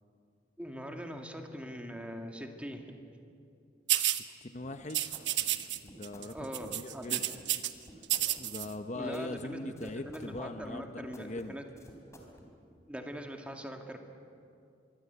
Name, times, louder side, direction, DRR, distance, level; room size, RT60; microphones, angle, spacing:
voice 1, 0.6-2.9 6.3-7.2 8.9-11.7 12.9-14.0, equal, 5° right, 3 dB, 2.1 m, -42 dB
sound 1, 3.9-4.2 4.9-5.8 6.0-6.3 6.5-7.7 8.0-8.7, right 13 dB, 80° right, 1.1 m, -30 dB
voice 2, 4.1-5.0 5.8-7.2 8.4-11.6, left 2 dB, 40° left, 8 dB, 0.8 m, -41 dB
sound 2, 4.6-12.5, equal, 15° left, 3.8 m, -54 dB
25.5 x 23.0 x 8.2 m, 2.5 s
head